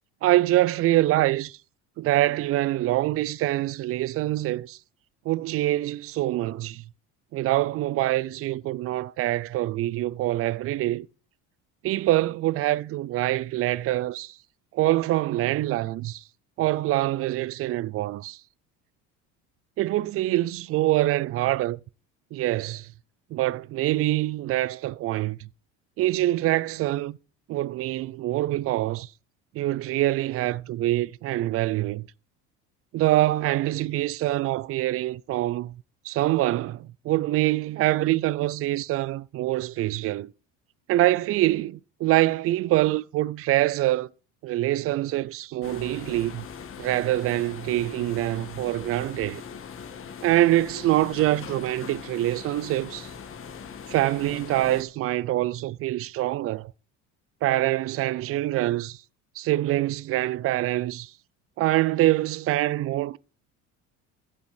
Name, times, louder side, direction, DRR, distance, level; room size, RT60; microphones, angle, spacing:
voice 1, 0.2-1.6 2.0-4.8 5.3-6.8 7.3-11.1 11.8-14.4 14.7-16.2 16.6-18.4 19.8-21.8 22.3-22.9 23.3-25.5 26.0-27.2 27.5-29.1 29.5-32.1 32.9-35.7 36.1-40.3 40.9-44.1 44.4-46.4 46.8-49.4 50.2-53.1 53.9-56.7 57.4-59.0 59.4-61.1 61.6-63.2, right 16 dB, 45° right, 0.4 m, -25 dB
sound 1, 45.6-54.8, left 6 dB, 40° left, 1.4 m, -41 dB
14.0 x 5.5 x 5.0 m
supercardioid pair, 110°, 34 cm